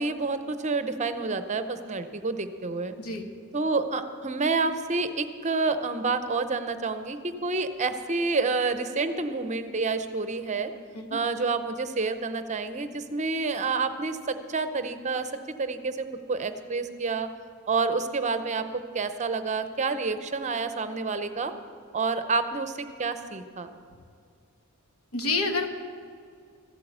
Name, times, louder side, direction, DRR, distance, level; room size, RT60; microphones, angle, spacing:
voice 1, 0.0-3.0 3.5-10.7 11.1-15.3 15.6-17.3 17.7-18.7 18.9-21.5 21.9-23.7, right 4 dB, 30° right, 10 dB, 0.7 m, -28 dB
voice 2, 25.1-25.7, left 3 dB, 75° left, 6 dB, 1.3 m, -28 dB
14.5 x 8.5 x 7.9 m, 2.3 s
head